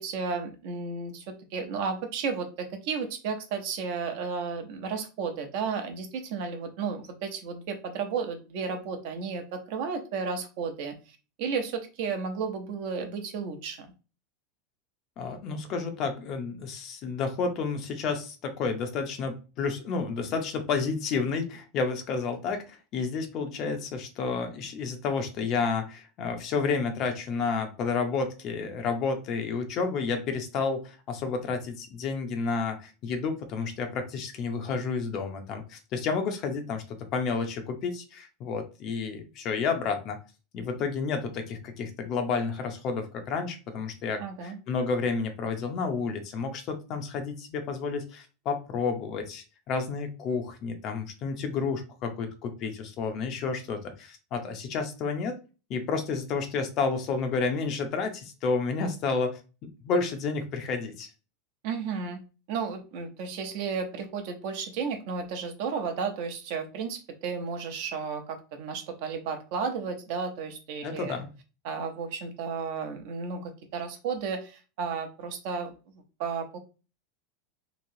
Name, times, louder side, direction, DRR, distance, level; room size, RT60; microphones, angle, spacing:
voice 1, 0.0-10.9 11.4-13.9 44.2-44.6 61.6-62.2 62.5-71.1 71.6-75.7 76.2-76.6, right 5 dB, 55° right, 5 dB, 0.7 m, -33 dB
voice 2, 15.2-36.8 37.1-40.2 40.5-55.4 55.7-61.1 70.8-71.3, left 4 dB, 35° left, 6 dB, 0.6 m, -30 dB
3.0 x 2.8 x 2.7 m, 0.32 s
supercardioid pair, 165°, 0 cm